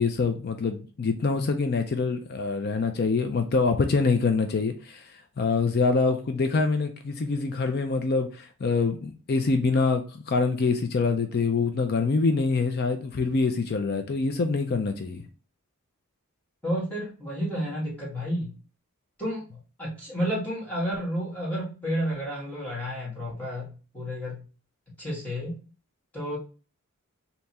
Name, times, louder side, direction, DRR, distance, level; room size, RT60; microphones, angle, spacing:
voice 1, 0.0-15.2, left 4 dB, 50° left, 7 dB, 0.5 m, -25 dB
voice 2, 16.6-18.5 19.2-19.4 19.8-24.4 25.0-25.6 26.1-26.4, equal, 5° left, -7 dB, 1.8 m, -31 dB
3.4 x 2.9 x 4.1 m, 0.35 s
head